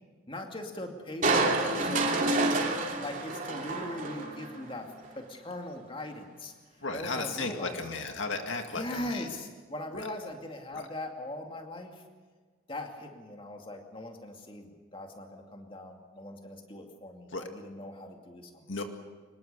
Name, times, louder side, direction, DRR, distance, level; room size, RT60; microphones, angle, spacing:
voice 1, 0.3-6.5 6.9-8.2 8.7-12.0 12.7-18.7, left 1 dB, 25° left, 3 dB, 2.4 m, -40 dB
Crushing, 1.2-4.6 5.0-5.1, right 2 dB, 35° right, 3.1 m, -28 dB
voice 2, 6.8-9.3 9.9-10.1 10.7-10.9 17.3-17.5 18.7-18.8, left 3 dB, 60° left, 5 dB, 2.1 m, -35 dB
25.0 x 21.5 x 6.9 m, 1.5 s
head